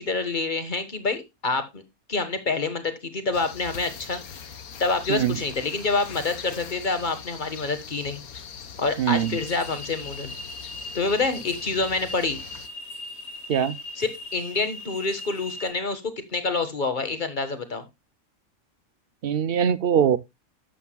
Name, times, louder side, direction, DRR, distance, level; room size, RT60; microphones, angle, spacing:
voice 1, 0.0-1.8 2.1-4.2 4.8-8.2 8.8-10.3 10.9-12.4 14.0-17.8, left 3 dB, 35° left, 1.5 m, -27 dB
sound 1, 3.3-12.7, left 7 dB, 90° left, 1.6 m, -41 dB
voice 2, 9.0-9.4 13.5-13.8 19.2-20.2, right 8 dB, 55° right, 0.7 m, -22 dB
sound 2, 9.1-15.7, left 1 dB, 50° left, 2.0 m, -39 dB
12.5 x 8.3 x 2.2 m
omnidirectional pair, 1.5 m